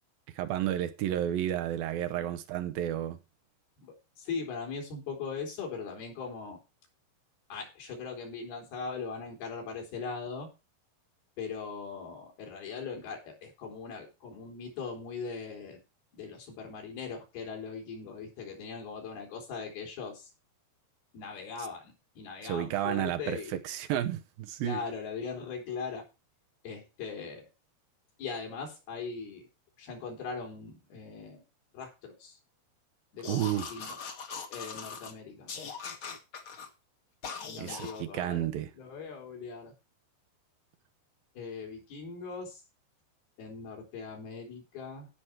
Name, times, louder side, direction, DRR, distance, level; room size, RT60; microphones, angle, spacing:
voice 1, 0.4-3.2 22.4-24.8 33.3-33.7 37.6-38.7, right 12 dB, 75° right, 2.5 m, -31 dB
voice 2, 3.8-6.6 7.5-10.5 11.4-15.8 16.1-20.3 21.1-23.6 24.6-26.0 26.6-27.5 28.2-29.4 29.8-31.4 31.7-32.4 33.1-34.0 34.5-35.5 37.5-38.5 38.8-39.7 41.4-42.6 43.4-45.1, left 5 dB, 75° left, 5.5 m, -40 dB
sound 1, 33.2-35.1 35.5-36.7 37.2-38.0, left 5 dB, 45° left, 1.8 m, -41 dB
16.0 x 6.1 x 4.6 m
omnidirectional pair, 4.4 m